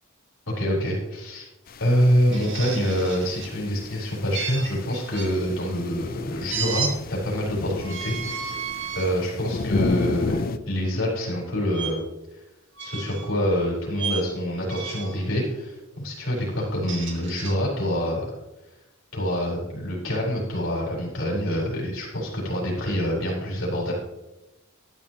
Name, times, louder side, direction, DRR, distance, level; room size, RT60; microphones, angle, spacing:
voice 1, 0.5-1.5 1.8-8.6 8.9-12.0 12.8-18.3 19.1-23.9, equal, 65° left, -3 dB, 4.5 m, -26 dB
sound 1, 1.7-10.6, left 3 dB, 45° left, 0.5 m, -33 dB
sound 2, 2.3-3.5 4.3-5.3 6.5-6.9 7.8-9.1 9.7-9.9 11.7-11.9 12.7-13.3 14.0-14.3 14.7-15.2 16.6-17.5, right 6 dB, 60° right, 2.1 m, -33 dB
12.5 x 11.0 x 3.0 m, 0.96 s
head